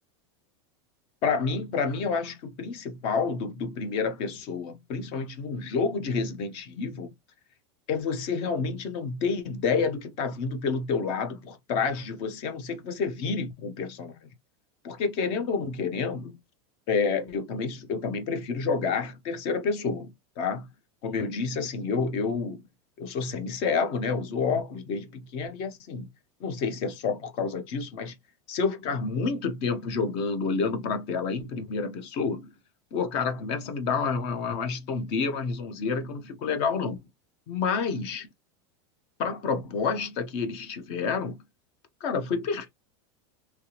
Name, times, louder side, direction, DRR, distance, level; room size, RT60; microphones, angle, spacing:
voice 1, 1.2-7.1 7.9-14.1 14.8-16.4 16.9-20.7 21.0-22.6 23.0-26.1 26.4-28.2 28.5-32.5 32.9-37.0 37.5-38.3 39.2-41.4 42.0-42.7, left 5 dB, 45° left, 0.9 m, -29 dB
3.4 x 2.9 x 2.9 m
supercardioid pair, 160°, 14 cm